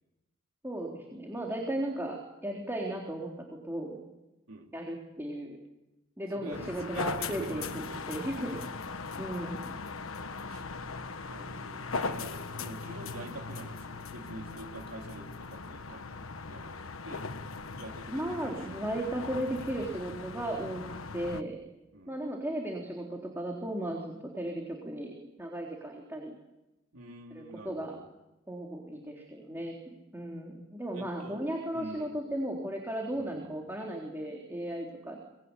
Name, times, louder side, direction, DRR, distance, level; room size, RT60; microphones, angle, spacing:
voice 1, 0.6-4.0 4.7-5.6 6.2-8.6 9.2-9.7 18.1-20.8 21.1-21.6 22.1-26.4 27.3-28.0 28.5-29.8 30.1-35.2, right 1 dB, 10° right, 0 dB, 3.8 m, -36 dB
voice 2, 6.3-8.1 8.3-8.6 10.5-10.6 11.3-16.7 17.0-17.3 17.7-19.0 21.9-22.2 26.9-28.0 30.9-31.5 31.7-32.2 33.1-33.5, right 1 dB, 80° right, 1 dB, 3.6 m, -46 dB
sound 1, 6.5-21.4, left 4 dB, 90° left, 1.3 m, -39 dB
25.5 x 21.0 x 9.9 m, 0.99 s
head